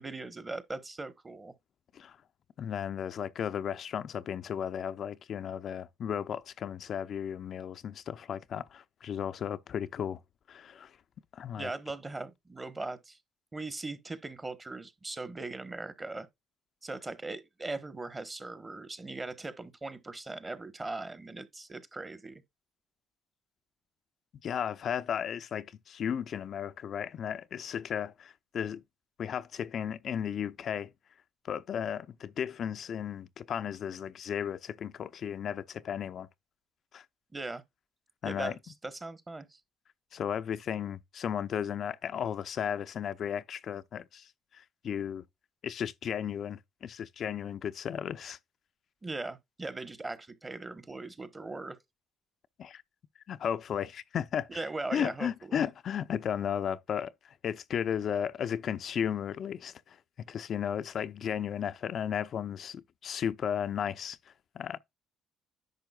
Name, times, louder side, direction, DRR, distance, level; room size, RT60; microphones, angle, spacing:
voice 1, 0.0-1.5 11.6-13.2 13.5-16.3 16.8-22.4 37.3-37.6 38.3-39.6 49.0-51.8 54.5-55.7, right 3 dB, 20° right, 1.1 m, -39 dB
voice 2, 2.6-10.2 10.5-11.0 11.3-11.7 24.4-28.8 29.2-30.9 31.5-36.3 36.9-37.0 38.2-38.5 40.1-45.2 45.6-48.4 52.6-52.8 53.3-54.6 54.9-60.0 60.3-64.8, left 8 dB, 50° left, 0.5 m, -35 dB
10.5 x 6.2 x 2.3 m
cardioid pair, 115°, 0 cm